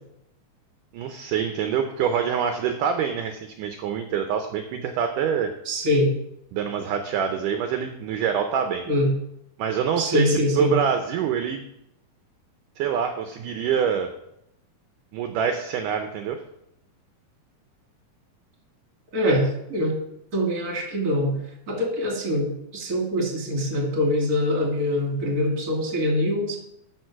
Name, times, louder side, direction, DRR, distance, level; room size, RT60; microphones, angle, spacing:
voice 1, 0.9-5.5 6.5-8.9 9.6-11.6 12.8-14.1 15.1-16.4, right 7 dB, 75° right, 6 dB, 2.0 m, -25 dB
voice 2, 5.7-6.1 8.9-9.1 10.0-10.7 19.1-20.0 20.3-21.3 21.7-26.6, left 1 dB, 30° right, 1 dB, 1.9 m, -23 dB
12.5 x 4.8 x 5.8 m, 0.78 s
omnidirectional pair, 4.3 m